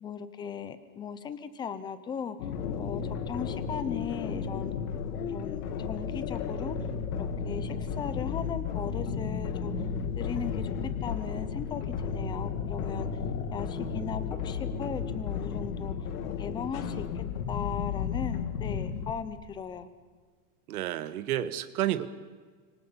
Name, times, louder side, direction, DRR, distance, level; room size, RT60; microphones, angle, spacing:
voice 1, 0.0-2.4 2.8-4.8 5.3-6.8 7.2-9.9 10.2-13.2 13.5-16.1 16.4-19.9, left 7 dB, 10° left, 12 dB, 0.7 m, -38 dB
sound 1, 2.4-19.1, left 6 dB, 70° left, 2.7 m, -33 dB
voice 2, 20.7-22.1, right 12 dB, 70° right, 13 dB, 1.6 m, -30 dB
30.0 x 26.0 x 5.8 m, 1.5 s
supercardioid pair, 170°, 46 cm